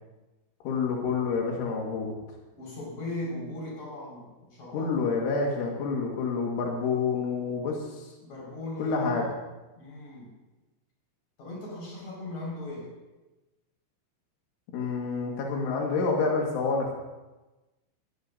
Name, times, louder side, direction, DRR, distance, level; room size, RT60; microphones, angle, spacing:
voice 1, 0.6-2.1 4.7-8.1 8.8-9.3 14.7-16.9, left 4 dB, 90° left, -1 dB, 4.3 m, -28 dB
voice 2, 2.5-4.9 8.2-9.3 9.7-10.3 11.4-12.9, left 2 dB, 40° left, -4 dB, 6.4 m, -38 dB
18.0 x 16.5 x 2.7 m, 1.1 s
omnidirectional pair, 5.4 m